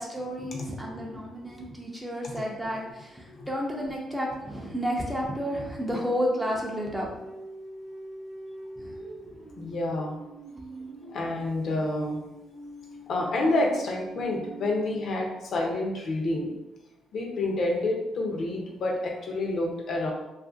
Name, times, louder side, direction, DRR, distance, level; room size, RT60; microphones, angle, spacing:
voice 1, 0.0-7.1 8.8-9.0, equal, 10° right, -2 dB, 0.5 m, -31 dB
sound 1, 2.0-2.2 4.0-15.1, right 1 dB, 60° right, 0.5 m, -45 dB
voice 2, 9.6-10.2 11.0-12.2 13.1-16.5 17.1-20.1, left 2 dB, 60° left, 0 dB, 0.6 m, -28 dB
2.7 x 2.4 x 2.5 m, 0.97 s
cardioid pair, 90°, 0 cm